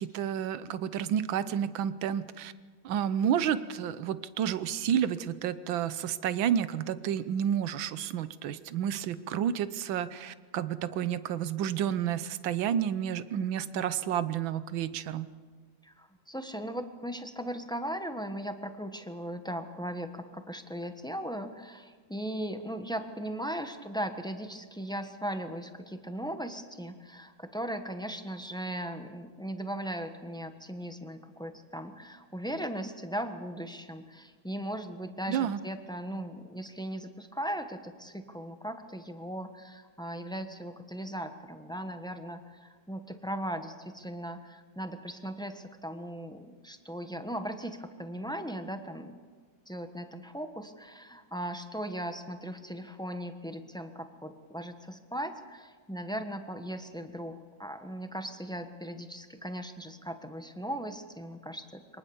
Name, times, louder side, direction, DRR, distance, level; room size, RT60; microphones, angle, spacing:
voice 1, 0.0-2.5 2.8-15.3 35.3-35.6, right 9 dB, 90° right, 14 dB, 1.6 m, -30 dB
voice 2, 15.8-49.2 49.7-62.0, right 1 dB, 5° left, 7 dB, 0.9 m, -38 dB
24.5 x 19.0 x 7.1 m, 1.5 s
omnidirectional pair, 2.1 m